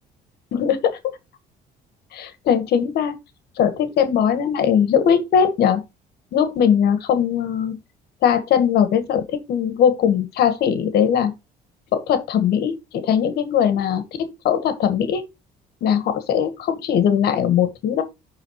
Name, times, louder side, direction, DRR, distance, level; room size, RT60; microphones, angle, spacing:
voice 1, 0.5-1.0 2.1-3.1 3.6-5.8 6.3-7.8 8.2-11.3 11.9-15.3 15.8-18.0, left 8 dB, 70° left, 1.6 m, -20 dB
11.0 x 3.9 x 3.1 m
cardioid pair, 110°, 17 cm